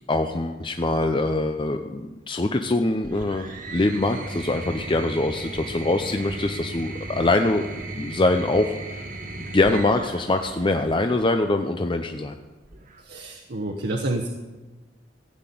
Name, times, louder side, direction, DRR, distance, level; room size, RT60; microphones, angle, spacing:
voice 1, 0.1-7.7 8.0-9.0 9.3-12.4, left 2 dB, 25° left, 6 dB, 0.6 m, -23 dB
sound 1, 3.0-11.4 12.6-13.3, right 2 dB, 45° right, 1.6 m, -36 dB
voice 2, 13.0-14.3, right 2 dB, 60° right, 0 dB, 1.1 m, -28 dB
15.0 x 6.0 x 8.4 m, 1.2 s
head